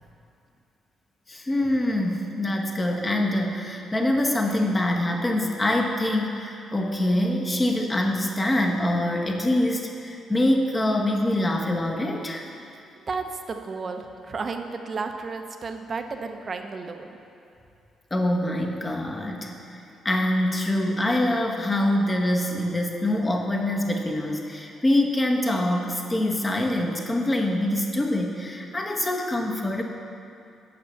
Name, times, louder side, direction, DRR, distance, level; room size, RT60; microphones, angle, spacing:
voice 1, 1.3-12.4 18.1-29.8, left 1 dB, 20° left, 1 dB, 1.0 m, -25 dB
voice 2, 13.1-17.1, right 4 dB, 40° right, 5 dB, 0.7 m, -33 dB
7.9 x 5.8 x 6.6 m, 2.6 s
cardioid pair, 90°, 0 cm